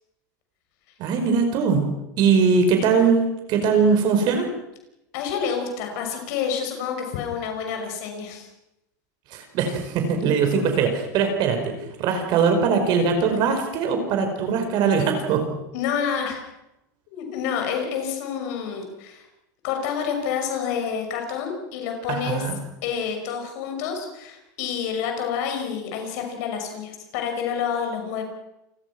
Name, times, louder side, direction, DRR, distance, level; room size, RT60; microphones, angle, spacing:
voice 1, 1.0-1.9 2.2-4.5 9.3-15.5 22.1-22.6, right 5 dB, 50° right, 5 dB, 5.1 m, -21 dB
voice 2, 5.1-8.5 15.7-16.4 17.1-19.2 19.6-22.4 22.8-28.2, left 7 dB, 65° left, 4 dB, 6.2 m, -28 dB
29.0 x 20.0 x 6.1 m, 0.88 s
supercardioid pair, 130°, 10 cm